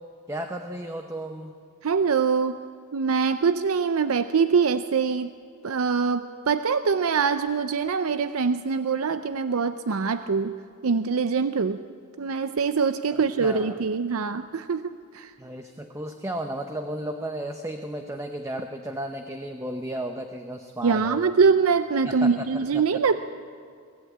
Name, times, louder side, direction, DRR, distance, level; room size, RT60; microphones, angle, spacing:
voice 1, 0.3-1.5 13.1-13.8 15.4-21.3 22.0-23.0, right 1 dB, 15° right, 5 dB, 0.8 m, -34 dB
voice 2, 1.8-2.6 2.9-5.3 5.6-10.6 10.8-11.8 12.2-15.3 20.8-23.2, right 5 dB, 80° right, 11 dB, 0.5 m, -24 dB
24.0 x 15.0 x 8.7 m, 2.2 s
head